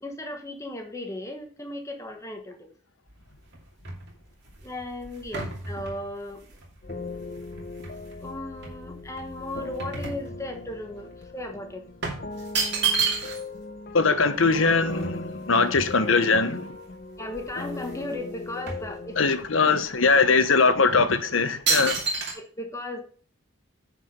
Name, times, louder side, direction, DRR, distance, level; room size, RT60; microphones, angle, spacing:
voice 1, 0.0-2.7 4.6-6.5 8.2-11.8 17.2-19.2 22.3-23.0, left 1 dB, 15° left, 1.1 m, -36 dB
sound 1, 3.1-8.2 8.6-10.8 11.1-11.3 12.0-13.6 13.9-14.0 14.2-16.3 16.9-17.0 17.2-18.0 18.3-19.5 20.1-20.2 20.9-21.1 21.7-22.3, right 5 dB, 55° right, 2.6 m, -31 dB
sound 2, 6.8-19.2, left 3 dB, 45° left, 0.8 m, -39 dB
voice 2, 13.9-16.7 19.2-22.0, left 4 dB, 75° left, 1.0 m, -21 dB
9.6 x 4.9 x 5.2 m
head